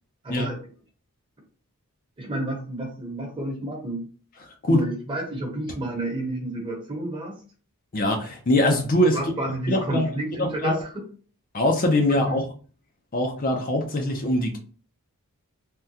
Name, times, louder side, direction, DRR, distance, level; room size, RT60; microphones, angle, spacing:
voice 1, 0.2-0.6 2.2-4.1 4.7-7.4 9.1-11.1 12.3-12.4, right 1 dB, 20° right, 1.0 m, -30 dB
voice 2, 4.4-4.9 7.9-9.3 9.7-10.1 10.4-10.7 11.5-12.4 13.1-14.6, left 1 dB, 40° left, 0.5 m, -22 dB
3.5 x 2.2 x 2.7 m
head